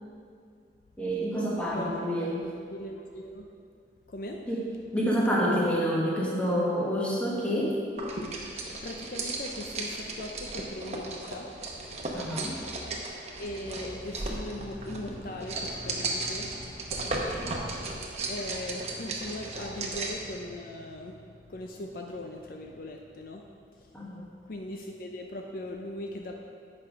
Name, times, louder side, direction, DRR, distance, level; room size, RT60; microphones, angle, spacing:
voice 1, 1.0-2.5 4.5-4.7 4.9-7.7 12.1-12.5 17.1-17.2 23.9-24.2, equal, 5° left, -5 dB, 1.4 m, -28 dB
voice 2, 1.6-2.1 2.4-3.5 4.1-4.4 8.8-11.8 13.4-21.2 21.5-23.4 24.5-26.3, left 1 dB, 55° left, 2 dB, 0.5 m, -39 dB
sound 1, 8.0-20.3, right 2 dB, 40° right, 0.9 m, -36 dB
8.3 x 5.3 x 5.1 m, 2.3 s
head